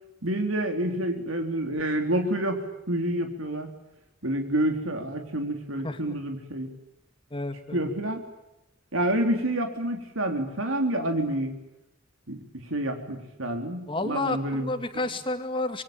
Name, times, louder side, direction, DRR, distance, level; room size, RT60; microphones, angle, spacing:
voice 1, 0.2-3.7 4.2-6.7 7.7-8.2 8.9-11.5 12.3-14.7, right 1 dB, 80° right, 4 dB, 3.7 m, -28 dB
voice 2, 7.3-7.9 13.9-15.8, left 2 dB, 25° left, 8 dB, 2.4 m, -30 dB
27.0 x 23.5 x 8.9 m, 0.92 s
head